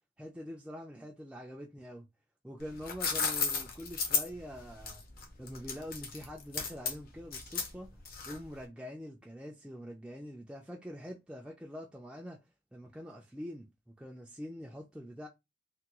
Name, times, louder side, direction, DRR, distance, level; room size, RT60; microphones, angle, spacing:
voice 1, 0.2-2.1 2.4-5.0 5.4-7.9 8.2-12.4 12.7-13.7 14.0-15.3, equal, 5° right, 0.3 m, -44 dB
sound 1, 2.6-8.6, left 5 dB, 50° left, 0.6 m, -34 dB
3.4 x 2.2 x 2.9 m
head